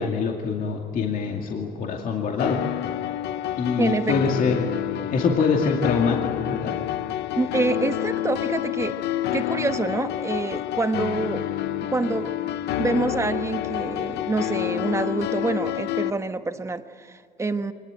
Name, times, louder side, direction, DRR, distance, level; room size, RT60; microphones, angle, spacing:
voice 1, 0.0-2.6 3.6-4.7 5.1-6.7, left 5 dB, 55° left, 1 dB, 2.4 m, -24 dB
sound 1, 2.4-16.1, left 13 dB, 85° left, 0.8 m, -28 dB
voice 2, 3.8-4.4 7.4-9.0 9.3-11.4 11.9-12.3 12.8-17.7, right 3 dB, 15° right, 8 dB, 1.3 m, -26 dB
24.0 x 20.0 x 9.2 m, 2.1 s
cardioid pair, 110°, 17 cm